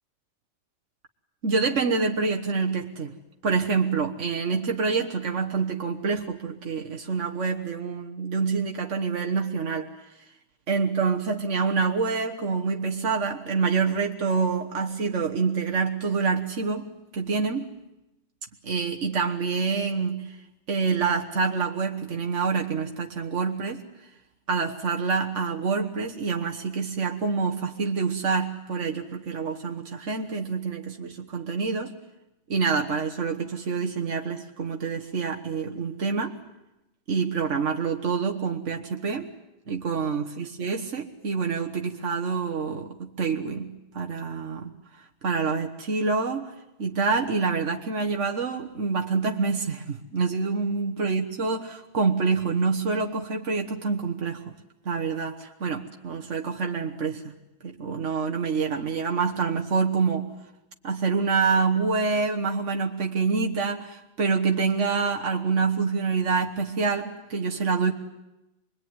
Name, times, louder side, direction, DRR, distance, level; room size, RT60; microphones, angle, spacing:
voice 1, 1.4-3.1 3.4-9.9 10.7-17.7 18.6-20.4 20.7-23.8 24.5-32.0 32.5-36.4 37.1-39.3 39.7-44.7 45.2-46.5 46.8-54.5 54.9-57.3 57.6-60.3 60.8-67.9, right 5 dB, 80° right, 1.8 m, -27 dB
25.5 x 22.0 x 9.6 m
omnidirectional pair, 1.2 m